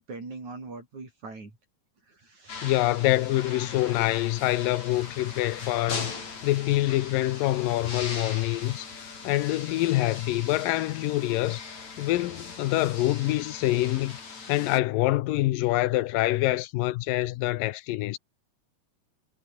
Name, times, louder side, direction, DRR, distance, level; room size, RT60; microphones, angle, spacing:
voice 1, 0.0-1.6 2.1-2.7, right 3 dB, 55° right, 8.3 m, -42 dB
sound 1, 2.5-14.8, left 5 dB, 50° left, 6.0 m, -40 dB
voice 2, 2.6-11.6 12.0-14.2 14.5-18.2, left 17 dB, 80° left, 2.4 m, -26 dB
omnidirectional pair, 4.0 m